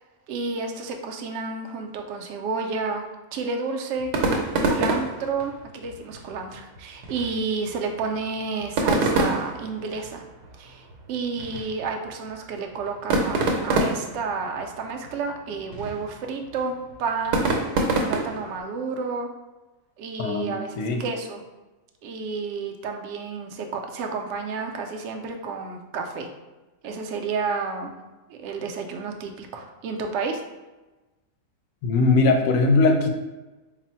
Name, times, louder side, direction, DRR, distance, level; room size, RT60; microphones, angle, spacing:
voice 1, 0.3-3.0 3.3-4.1 4.6-10.2 10.6-13.4 13.6-16.7 17.0-17.5 18.0-19.3 20.0-21.4 22.0-26.3 26.8-27.9 28.3-30.4, right 4 dB, 70° right, 3 dB, 0.7 m, -30 dB
sound 1, 4.0-18.6, right 2 dB, 85° right, 1.2 m, -28 dB
voice 2, 20.2-21.0 31.8-33.1, left 3 dB, 70° left, 4 dB, 0.8 m, -20 dB
3.9 x 2.0 x 4.2 m, 1.1 s
omnidirectional pair, 1.7 m